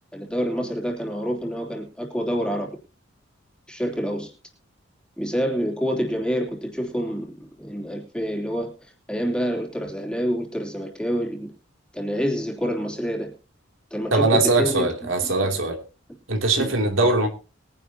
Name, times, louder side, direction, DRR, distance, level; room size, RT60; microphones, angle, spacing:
voice 1, 0.1-2.7 3.7-4.3 5.2-11.5 11.9-13.3 13.9-14.9 15.4-15.6 16.6-16.7, equal, 5° left, 3.2 m, -27 dB
voice 2, 14.1-15.8 16.3-17.3, right 2 dB, 80° right, 2.8 m, -21 dB
22.0 x 11.0 x 2.8 m
head